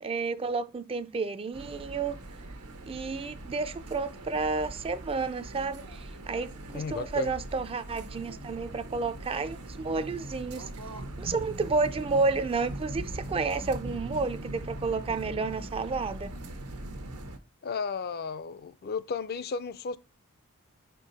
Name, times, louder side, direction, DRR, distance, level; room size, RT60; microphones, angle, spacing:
voice 1, 0.0-2.2 2.9-10.7 11.2-16.3, right 4 dB, 25° right, 0.3 m, -31 dB
sound 1, 1.5-17.4, right 1 dB, 85° right, 1.0 m, -41 dB
voice 2, 6.7-7.3 17.6-20.0, left 5 dB, 45° left, 0.4 m, -34 dB
5.6 x 4.6 x 4.0 m
head